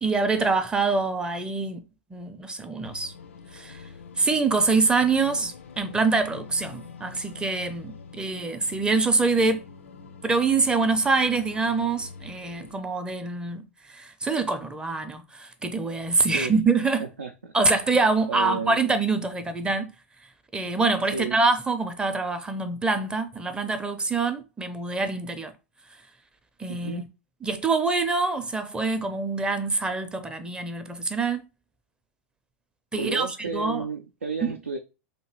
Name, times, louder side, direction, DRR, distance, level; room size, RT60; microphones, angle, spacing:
voice 1, 0.0-1.8 2.1-3.1 3.5-3.8 4.2-9.6 10.2-17.0 17.5-19.9 20.5-25.5 26.6-27.1 27.4-31.4 32.9-33.9 34.4-34.5, right 3 dB, 10° right, 0.5 m, -25 dB
sound 1, 2.8-12.8, left 5 dB, 75° left, 0.4 m, -45 dB
voice 2, 17.2-17.5 18.3-18.8 21.1-21.4 26.7-27.1 33.0-34.8, right 4 dB, 90° right, 0.4 m, -32 dB
2.8 x 2.6 x 2.9 m
figure-of-eight pair, 95°, 7 cm